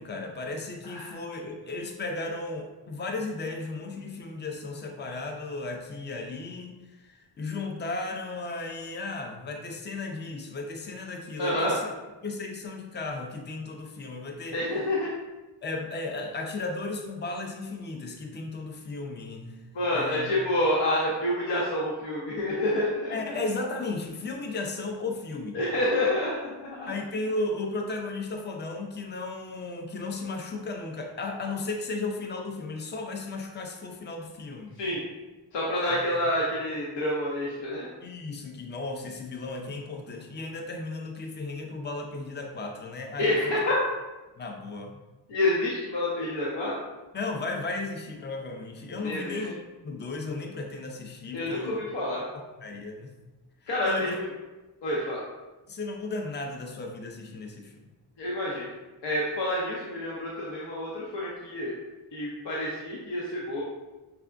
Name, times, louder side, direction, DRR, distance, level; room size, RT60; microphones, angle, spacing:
voice 1, 0.0-11.8 12.2-14.6 15.6-19.6 19.9-20.3 23.1-25.6 26.9-34.8 35.9-36.2 38.0-43.4 44.4-45.0 47.1-51.8 52.6-53.1 53.8-54.1 55.7-57.8, left 3 dB, 25° left, 3 dB, 0.5 m, -35 dB
voice 2, 11.4-11.8 14.5-15.1 19.7-23.3 25.5-26.9 34.7-35.0 35.5-37.9 43.2-43.8 45.3-46.7 49.0-49.5 51.3-52.2 53.7-54.3 54.8-55.2 58.2-58.7 59.0-61.7 62.1-63.6, left 1 dB, 80° left, -5 dB, 0.9 m, -28 dB
5.8 x 3.3 x 2.5 m, 1.1 s
wide cardioid pair, 155°, 42 cm